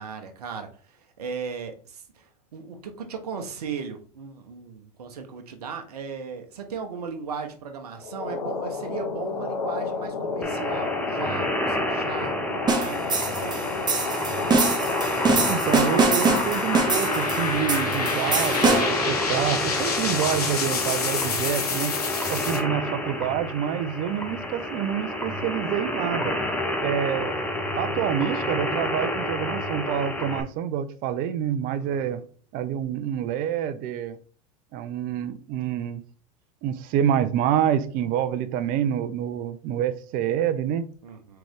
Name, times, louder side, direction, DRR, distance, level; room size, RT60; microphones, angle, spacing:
voice 1, 0.0-13.7 20.0-20.1 31.7-32.3 41.0-41.4, right 5 dB, 90° right, 0.8 m, -37 dB
sound 1, 8.0-22.6, left 5 dB, 85° left, 1.0 m, -30 dB
sound 2, 10.4-30.4, left 1 dB, 5° left, 0.9 m, -29 dB
sound 3, 12.7-19.1, right 3 dB, 20° right, 1.0 m, -24 dB
voice 2, 15.5-22.0 22.3-26.3 26.8-27.4 27.8-32.2 32.5-34.2 34.7-36.0 36.6-40.9, right 9 dB, 50° right, 0.5 m, -27 dB
3.7 x 3.4 x 3.4 m
hypercardioid pair, 95°, 19 cm